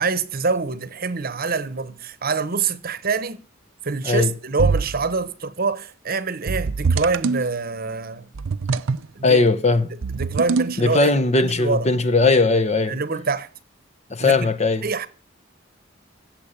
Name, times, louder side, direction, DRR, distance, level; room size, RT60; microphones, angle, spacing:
voice 1, 0.0-3.4 3.8-8.3 9.1-9.4 10.1-11.1 11.4-11.9 12.9-13.5 14.2-14.5 14.8-15.1, right 4 dB, 50° right, 1.0 m, -25 dB
sound 1, 4.6-5.1 6.5-7.5 8.3-9.1 10.0-10.9, right 4 dB, 85° right, 0.6 m, -23 dB
voice 2, 9.2-9.9 10.8-13.0 14.1-14.9, left 3 dB, 35° left, 0.9 m, -18 dB
15.0 x 7.6 x 7.3 m
head